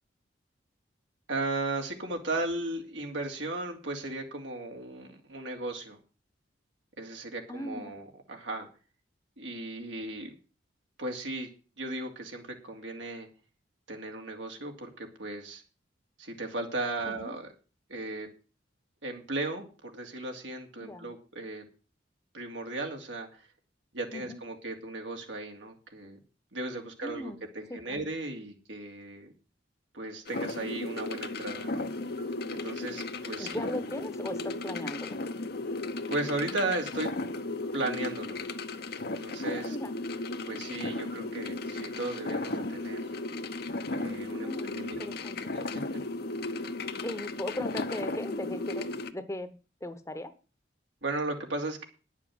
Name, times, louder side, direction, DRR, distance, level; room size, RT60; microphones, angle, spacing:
voice 1, 1.3-6.0 7.0-8.7 9.4-10.3 11.0-11.5 11.8-13.3 13.9-15.6 16.2-17.5 17.9-18.3 19.0-21.6 22.3-23.4 23.9-26.2 26.5-29.3 29.9-31.8 32.5-33.6 36.1-37.1 37.7-38.4 39.0-39.8 40.5-43.1 43.9-45.1 45.5-45.6 51.0-51.9, right 2 dB, 85° right, 3 dB, 2.8 m, -36 dB
voice 2, 7.5-8.0 17.1-17.3 20.8-21.1 24.1-24.4 27.0-27.4 27.7-28.1 33.4-35.2 39.5-40.0 44.4-44.7 45.0-45.4 47.0-49.5 49.8-50.3, left 1 dB, 15° left, 11 dB, 1.0 m, -38 dB
sound 1, 30.3-49.1, left 2 dB, 60° left, 0.9 m, -35 dB
10.5 x 7.3 x 7.8 m, 0.36 s
head